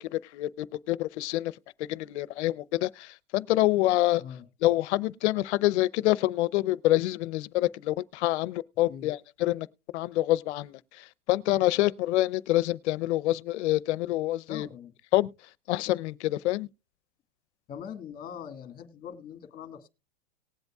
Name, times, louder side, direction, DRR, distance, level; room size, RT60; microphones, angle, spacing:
voice 1, 0.1-0.5 0.9-1.5 1.9-4.2 4.6-9.7 9.9-10.8 11.3-14.7 15.1-15.3 15.7-16.7, left 16 dB, 65° left, 0.7 m, -26 dB
voice 2, 14.5-14.9 17.7-19.9, left 8 dB, 25° left, 1.7 m, -42 dB
19.0 x 8.0 x 2.4 m
supercardioid pair, 145°, 37 cm